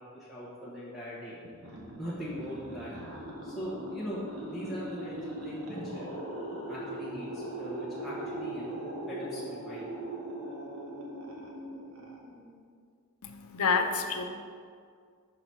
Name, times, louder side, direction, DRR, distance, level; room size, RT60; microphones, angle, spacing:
voice 1, 0.0-1.4 2.0-2.9 3.4-6.1 6.7-8.8 9.1-9.9, equal, ahead, -10 dB, 1.1 m, -40 dB
sound 1, 1.4-12.6, right 1 dB, 80° right, 1.2 m, -40 dB
voice 2, 13.2-14.2, left 5 dB, 85° left, 6 dB, 0.6 m, -28 dB
5.5 x 4.0 x 6.0 m, 2.1 s
head